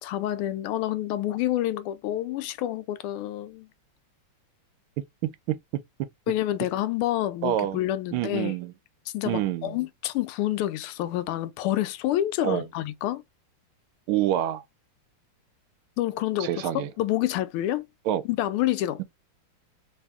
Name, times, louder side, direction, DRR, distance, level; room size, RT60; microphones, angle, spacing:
voice 1, 0.0-3.7 6.3-8.5 9.1-13.2 16.0-17.9 18.2-19.0, left 13 dB, 85° left, 1.5 m, -28 dB
voice 2, 7.4-7.8 8.1-8.7 9.2-9.7 12.4-12.6 14.1-14.6 16.4-16.9 18.1-18.2, right 12 dB, 80° right, 1.4 m, -26 dB
3.4 x 2.7 x 3.4 m
omnidirectional pair, 2.4 m